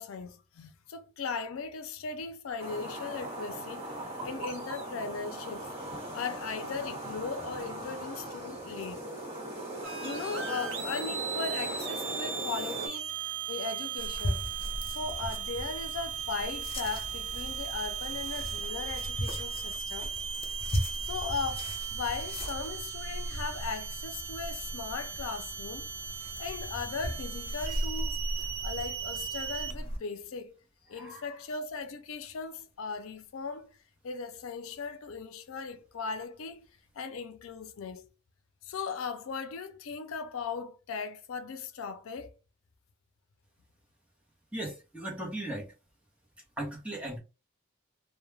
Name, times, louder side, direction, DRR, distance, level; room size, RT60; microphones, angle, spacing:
voice 1, 0.0-3.9 4.2-5.7 6.1-9.1 10.0-14.4 14.9-20.1 21.0-25.9 26.4-28.3 28.6-30.5 30.9-33.8 34.0-36.7 36.9-38.1 38.6-42.3, left 5 dB, 85° left, 0.4 m, -38 dB
sound 1, 2.6-12.9, right 1 dB, 30° right, 1.1 m, -39 dB
sound 2, 9.8-29.7, right 7 dB, 70° right, 0.5 m, -38 dB
sound 3, 14.0-30.0, equal, 25° left, 0.5 m, -38 dB
voice 2, 30.9-31.2 44.5-45.7 46.6-47.2, right 1 dB, 5° right, 0.8 m, -37 dB
2.2 x 2.1 x 3.1 m
head